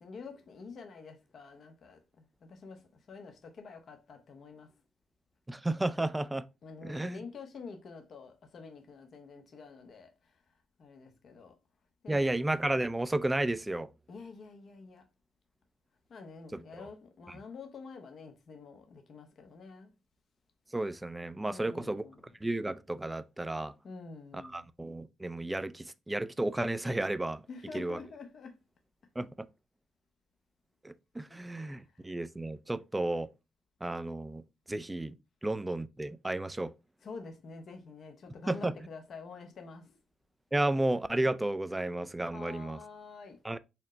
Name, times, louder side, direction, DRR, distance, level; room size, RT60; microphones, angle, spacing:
voice 1, 0.0-4.7 6.6-10.3 10.8-11.5 12.0-12.4 14.1-15.0 16.1-19.9 21.5-22.3 23.8-24.7 27.5-28.6 31.3-31.4 31.9-32.0 37.0-40.0 42.3-43.4, left 4 dB, 55° left, 0.7 m, -48 dB
voice 2, 5.5-6.4 6.8-7.2 12.1-13.9 16.5-16.6 20.7-22.1 22.4-23.7 24.5-27.4 27.7-28.0 29.2-29.3 30.8-33.3 33.8-34.4 34.7-35.2 35.4-36.7 38.5-38.7 40.5-42.8 43.4-43.6, right 1 dB, 10° right, 0.3 m, -32 dB
4.3 x 2.0 x 3.7 m
cardioid pair, 90°, 0 cm